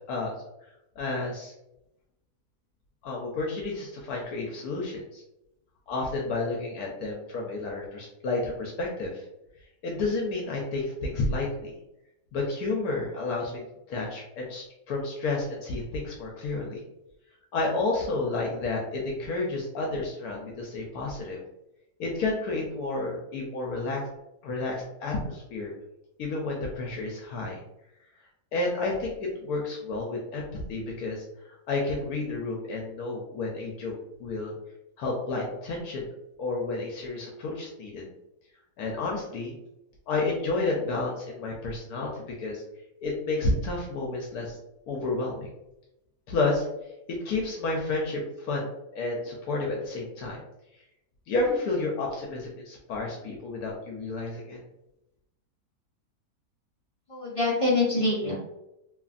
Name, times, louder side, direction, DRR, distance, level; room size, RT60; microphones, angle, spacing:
voice 1, 1.0-1.5 3.0-5.2 5.9-9.2 9.8-11.7 12.3-16.8 17.5-21.4 22.0-24.0 24.4-25.7 26.2-27.6 28.5-31.2 31.7-33.9 34.2-34.5 35.0-36.1 36.4-38.1 38.8-39.5 40.1-42.6 43.0-44.6 44.9-45.5 46.3-46.7 47.1-50.4 51.3-54.6, left 3 dB, 75° left, -1 dB, 1.0 m, -31 dB
voice 2, 57.1-58.4, left 2 dB, 50° left, -6 dB, 0.4 m, -25 dB
3.1 x 2.4 x 2.4 m, 0.89 s
omnidirectional pair, 1.7 m